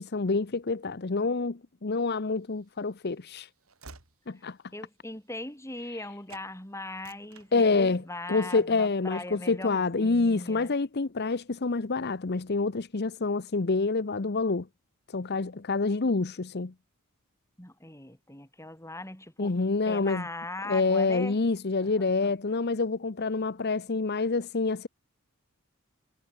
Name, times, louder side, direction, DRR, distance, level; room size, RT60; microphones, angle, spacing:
voice 1, 0.0-3.5 4.3-4.6 7.5-8.0 8.3-14.7 15.1-16.7 19.4-20.3 20.6-24.9, left 3 dB, 45° left, 0.8 m, -27 dB
Train / Slam, 2.4-6.0 6.3-6.5 6.9-8.1 8.5-8.8, right 3 dB, 70° right, 3.9 m, -54 dB
voice 2, 4.4-10.7 17.6-19.6 19.9-21.4 21.8-22.3, left 2 dB, 15° left, 4.2 m, -40 dB
head